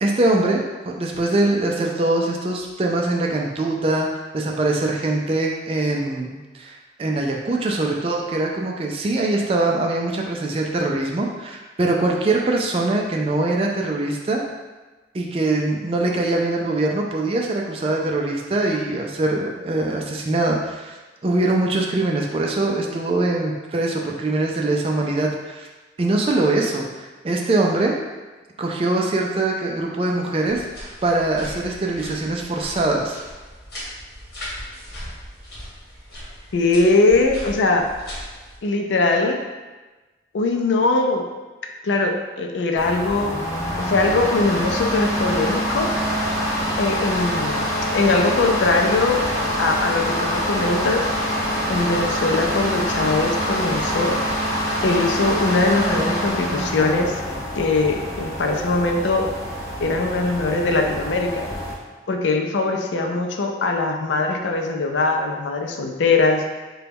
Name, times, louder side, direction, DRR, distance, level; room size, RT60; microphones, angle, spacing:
voice 1, 0.0-14.4 15.1-21.0 21.2-25.7 26.0-28.0 28.6-33.2, right 2 dB, 30° right, 0 dB, 0.3 m, -23 dB
sound 1, 30.4-38.6, equal, 60° left, 1.3 m, -38 dB
voice 2, 36.5-37.8 38.6-39.4 40.3-41.2 41.8-43.3 43.8-45.9 46.8-49.2 49.6-51.1 51.7-54.1 54.8-57.2 57.6-59.3 59.8-61.4 62.1-66.4, left 3 dB, 90° left, 3 dB, 0.4 m, -21 dB
sound 2, 42.8-61.7, equal, 20° left, 0.6 m, -25 dB
3.9 x 2.2 x 3.4 m, 1.2 s
head